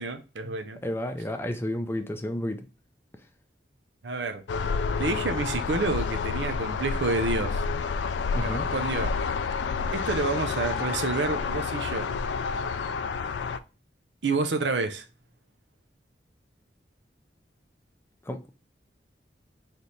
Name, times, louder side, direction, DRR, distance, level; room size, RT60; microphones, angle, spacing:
voice 1, 0.0-0.8 4.0-4.4 5.0-7.6 8.4-9.1 9.9-12.1 14.2-15.0, right 3 dB, 85° right, 0.6 m, -29 dB
voice 2, 0.8-2.7 8.3-8.7 18.3-18.4, left 1 dB, 15° left, 0.4 m, -31 dB
sound 1, 4.5-13.6, left 5 dB, 85° left, 0.4 m, -29 dB
3.4 x 3.0 x 4.0 m
head